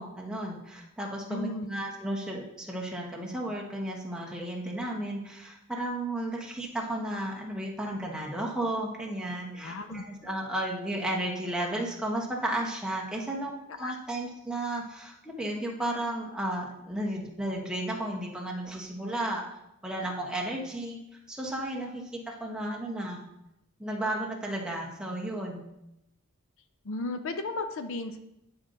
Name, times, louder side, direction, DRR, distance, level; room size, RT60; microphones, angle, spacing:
voice 1, 0.0-19.4 19.8-21.0 21.3-23.2 23.8-25.7, right 1 dB, 5° right, -2 dB, 1.2 m, -33 dB
voice 2, 1.3-1.7 9.5-10.0 13.8-14.0 26.8-28.2, left 2 dB, 60° left, 8 dB, 0.5 m, -34 dB
9.5 x 5.1 x 3.9 m, 0.85 s
head